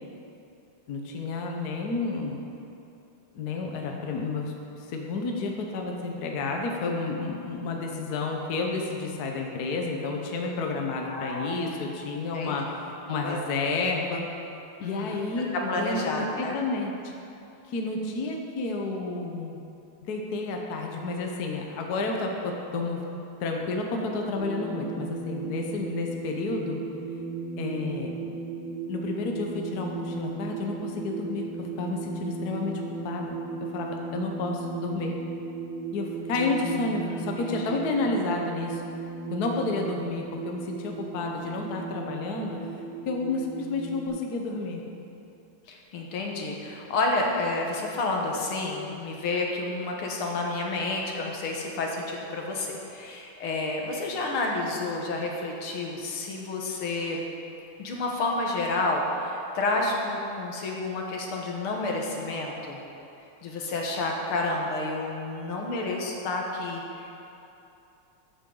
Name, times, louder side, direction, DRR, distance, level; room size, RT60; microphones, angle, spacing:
voice 1, 0.9-2.4 3.3-14.2 14.8-17.1 17.7-19.7 20.1-23.0 23.4-26.8 27.6-28.1 28.9-33.4 33.7-35.2 35.9-38.8 39.3-42.6 43.1-44.8, left 3 dB, 55° left, 1 dB, 1.3 m, -31 dB
voice 2, 11.0-11.5 12.3-12.5 13.2-13.4 14.8-15.2 15.7-16.6 28.2-28.3 36.6-36.8 37.1-37.2 37.5-37.7 45.7-57.2 57.8-62.8 63.4-67.3, left 2 dB, 80° left, 0 dB, 2.1 m, -30 dB
sound 1, 24.3-44.1, right 4 dB, 35° right, 1.8 m, -36 dB
14.0 x 8.6 x 3.9 m, 2.8 s
omnidirectional pair, 2.4 m